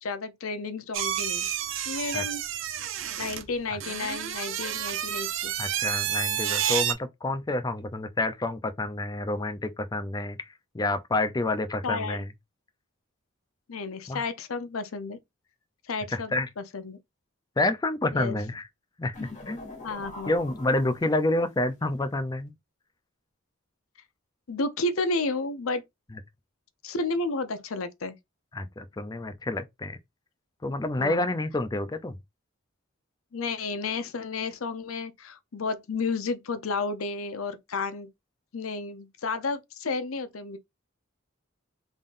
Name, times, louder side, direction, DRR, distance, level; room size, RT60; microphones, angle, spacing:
voice 1, 0.0-1.5 1.9-2.4 3.2-5.5 11.8-12.2 13.7-15.2 15.9-17.0 18.1-18.4 19.8-20.3 24.5-25.8 26.8-28.2 31.0-31.2 33.3-38.1 38.5-40.6, left 3 dB, 85° left, 0.7 m, -32 dB
sound 1, 0.9-6.9, right 10 dB, 65° right, 0.6 m, -30 dB
voice 2, 5.6-12.3 14.1-14.2 16.1-16.5 17.6-18.7 19.0-19.7 20.3-22.6 26.1-26.2 28.5-30.0 30.6-32.2, left 2 dB, 20° left, 0.4 m, -29 dB
sound 2, 19.1-21.5, left 2 dB, 35° left, 1.8 m, -42 dB
3.6 x 3.6 x 2.5 m
head